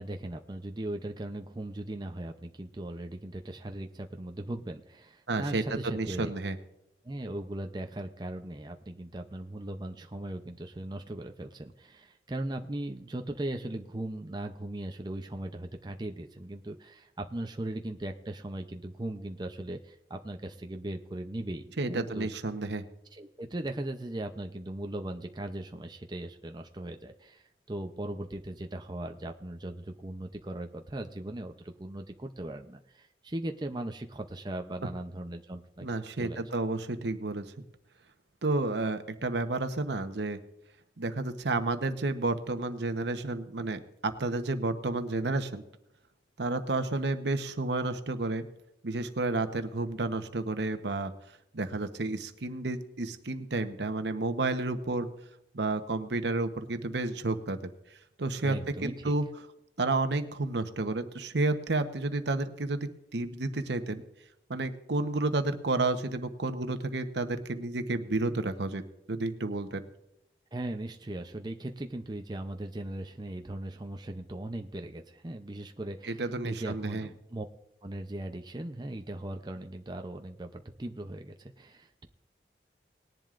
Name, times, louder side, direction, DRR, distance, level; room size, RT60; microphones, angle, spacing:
voice 1, 0.0-6.3 7.0-22.4 23.1-35.9 36.2-36.5 58.4-59.1 70.5-77.5 77.8-82.1, right 1 dB, 25° right, 5 dB, 0.6 m, -38 dB
voice 2, 5.3-6.6 21.8-22.8 35.8-37.5 38.4-40.4 41.0-45.6 46.4-48.4 48.8-51.1 51.5-55.1 55.5-57.6 58.2-58.6 58.8-59.2 59.8-64.0 64.5-68.8 69.1-69.9 76.0-77.1, right 2 dB, 75° right, 8 dB, 1.0 m, -31 dB
19.5 x 10.5 x 2.5 m, 0.84 s
head